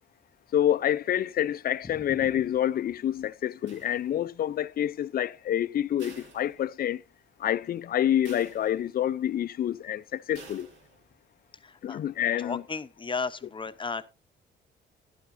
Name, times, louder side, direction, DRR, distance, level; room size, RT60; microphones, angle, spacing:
voice 1, 0.5-7.0 7.4-10.7 11.8-12.6, left 11 dB, 50° left, 0.5 m, -27 dB
sound 1, 3.7-4.5 6.0-7.1 7.5-7.6 8.3-9.1 10.3-11.1, right 4 dB, 75° right, 2.5 m, -51 dB
voice 2, 11.6-12.0 12.4-14.1, left 4 dB, 25° left, 0.8 m, -34 dB
14.0 x 11.5 x 2.7 m
cardioid pair, 90°, 20 cm